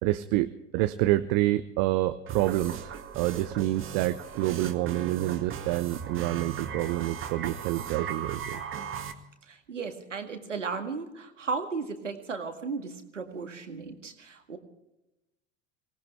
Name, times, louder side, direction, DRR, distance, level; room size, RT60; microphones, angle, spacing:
voice 1, 0.0-8.6, right 16 dB, 55° right, 9 dB, 0.9 m, -28 dB
sound 1, 2.3-9.1, right 7 dB, 35° right, 2.0 m, -38 dB
voice 2, 9.4-14.6, right 4 dB, 90° right, 6 dB, 2.0 m, -35 dB
24.0 x 18.0 x 3.3 m, 0.94 s
hypercardioid pair, 80°, 36 cm